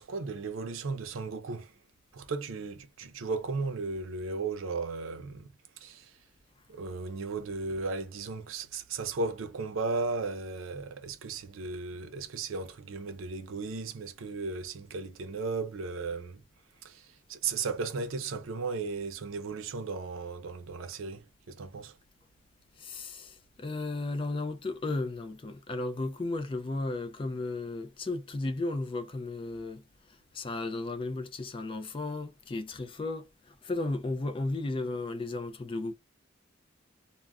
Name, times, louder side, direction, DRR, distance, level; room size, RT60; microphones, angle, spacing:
voice 1, 0.0-1.7 2.1-5.5 5.8-6.1 6.7-16.4 16.8-21.9, right 4 dB, 85° right, 0.5 m, -35 dB
voice 2, 22.8-29.8 30.3-35.9, left 2 dB, 25° left, 0.3 m, -34 dB
2.4 x 2.1 x 3.4 m
head